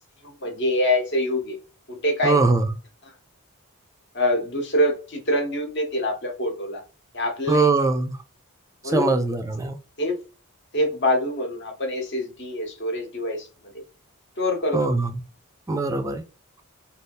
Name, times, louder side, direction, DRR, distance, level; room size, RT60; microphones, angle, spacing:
voice 1, 0.2-1.6 1.9-2.4 4.1-6.8 7.1-7.7 8.8-9.1 10.0-10.2 10.7-13.5 14.4-14.8, left 1 dB, 50° left, 0.9 m, -25 dB
voice 2, 2.2-2.7 7.5-8.2 8.9-9.8 14.7-15.1 15.7-16.2, right 3 dB, 15° right, 0.3 m, -21 dB
2.6 x 2.4 x 3.4 m
head